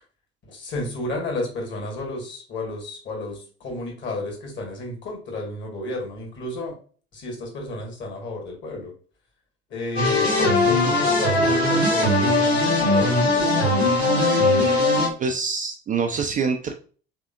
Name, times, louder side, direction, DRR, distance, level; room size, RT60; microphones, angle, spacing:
voice 1, 0.4-6.7 7.1-8.9 9.7-13.7, left 2 dB, 40° left, 1 dB, 1.6 m, -32 dB
sound 1, 10.0-15.1, left 2 dB, 80° left, 1.1 m, -19 dB
voice 2, 15.2-16.7, right 5 dB, 25° right, 4 dB, 0.4 m, -25 dB
3.6 x 3.4 x 2.4 m, 0.41 s
figure-of-eight pair, 60°, 30 cm